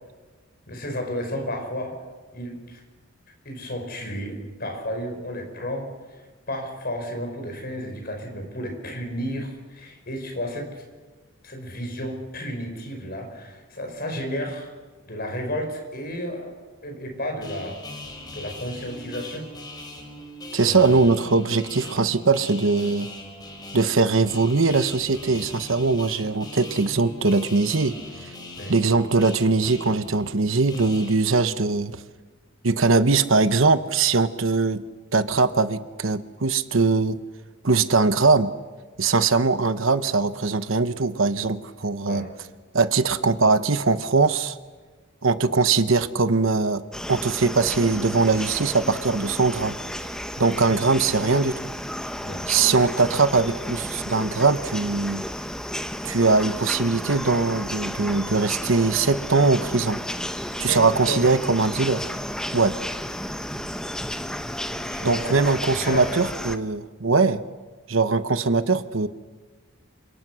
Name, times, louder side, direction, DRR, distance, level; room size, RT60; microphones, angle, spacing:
voice 1, 0.7-2.0 2.3-2.8 3.4-5.9 6.5-10.7 11.4-14.7 15.1-16.5 16.8-17.8 18.3-19.5 20.5-21.1 28.6-28.7 42.1-42.3 50.6-50.7 52.2-52.4 60.7-61.3 64.9-66.2, equal, 45° left, 3 dB, 5.8 m, -32 dB
sound 1, 17.4-31.1, left 2 dB, 20° left, 4.6 m, -40 dB
voice 2, 20.5-23.1 23.7-28.0 28.2-28.3 28.7-32.0 32.6-34.8 35.1-37.2 37.6-38.5 39.0-42.3 42.7-44.6 45.2-46.8 47.1-49.8 50.4-51.7 52.5-55.2 56.0-60.0 60.6-62.1 62.5-62.8 65.0-67.4 67.9-69.1, right 4 dB, 70° right, 12 dB, 1.0 m, -21 dB
sound 2, 46.9-66.6, equal, 5° left, 1.0 m, -33 dB
28.0 x 26.5 x 6.3 m, 1.3 s
head